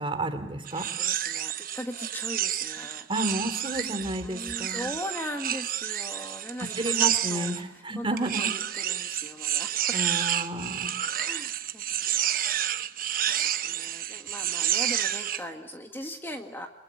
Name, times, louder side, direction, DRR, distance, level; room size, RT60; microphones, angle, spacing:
voice 1, 0.0-0.9 3.1-4.9 6.6-8.5 9.9-10.9, right 1 dB, 30° right, 8 dB, 3.0 m, -31 dB
voice 2, 0.7-3.1 4.2-10.0 11.2-12.0 13.3-16.7, equal, 15° left, 4 dB, 1.7 m, -40 dB
sound 1, 0.7-7.6 8.2-15.4, right 11 dB, 50° right, 1.1 m, -29 dB
29.0 x 23.0 x 8.5 m, 0.95 s
head